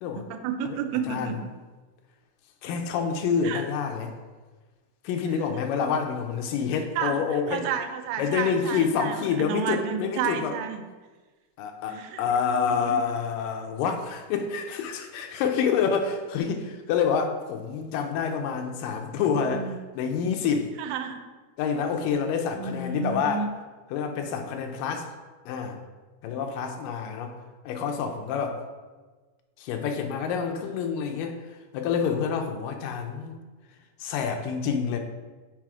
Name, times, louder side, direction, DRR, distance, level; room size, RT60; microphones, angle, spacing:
voice 1, 0.3-1.4 3.4-3.6 7.0-7.2 7.5-10.8 11.9-12.2 12.7-13.0 19.3-19.8 20.8-21.2 22.6-23.5, right 7 dB, 90° right, 8 dB, 2.3 m, -31 dB
voice 2, 2.6-4.1 5.0-7.7 8.2-10.5 11.6-20.7 21.6-23.4 23.9-25.1 25.5-25.8 26.2-27.4 27.6-28.6 29.6-33.4 34.0-35.0, left 6 dB, 85° left, 4 dB, 2.3 m, -27 dB
6.1 x 4.1 x 4.7 m, 1.3 s
omnidirectional pair, 3.9 m